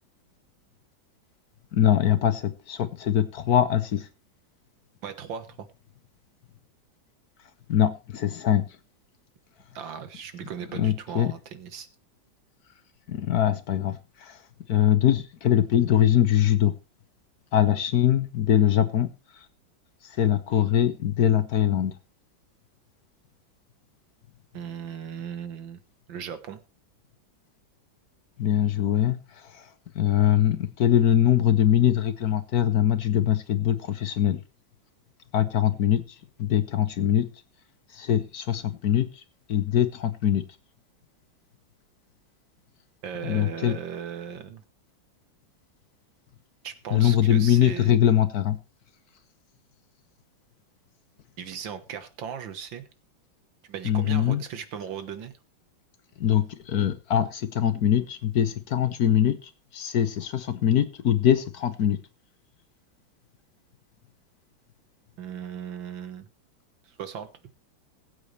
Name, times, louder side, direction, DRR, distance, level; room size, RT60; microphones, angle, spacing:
voice 1, 1.7-4.0 7.7-8.6 10.8-11.3 13.1-14.3 14.7-16.7 17.5-19.1 20.2-21.9 28.4-29.2 29.9-34.4 35.3-36.0 36.4-37.3 37.9-39.1 39.5-40.4 43.2-43.8 46.9-48.6 53.8-54.4 56.2-59.4 59.7-62.0, left 10 dB, 60° left, 11 dB, 1.3 m, -22 dB
voice 2, 5.0-5.7 9.8-11.9 24.5-25.8 26.1-26.6 43.0-44.6 46.6-48.0 51.4-52.8 53.6-55.3 65.2-66.3 66.8-67.3, right 8 dB, 75° right, 10 dB, 2.0 m, -37 dB
20.5 x 8.3 x 3.3 m, 0.31 s
omnidirectional pair, 2.1 m